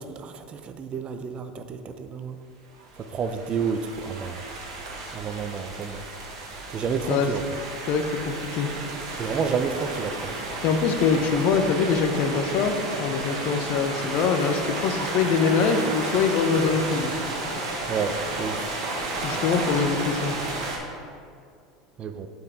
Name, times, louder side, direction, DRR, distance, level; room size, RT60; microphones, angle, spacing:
voice 1, 0.0-2.4 3.0-4.4 5.1-6.0 6.7-7.4 9.2-10.3 17.9-18.7 22.0-22.3, right 6 dB, 35° right, 9 dB, 0.6 m, -30 dB
sound 1, 2.8-20.8, right 2 dB, 70° right, 1.4 m, -32 dB
voice 2, 7.9-8.7 10.6-17.1 19.2-20.4, left 5 dB, 55° left, 5 dB, 0.8 m, -24 dB
7.7 x 4.6 x 4.8 m, 2.3 s
hypercardioid pair, 80°, 3 cm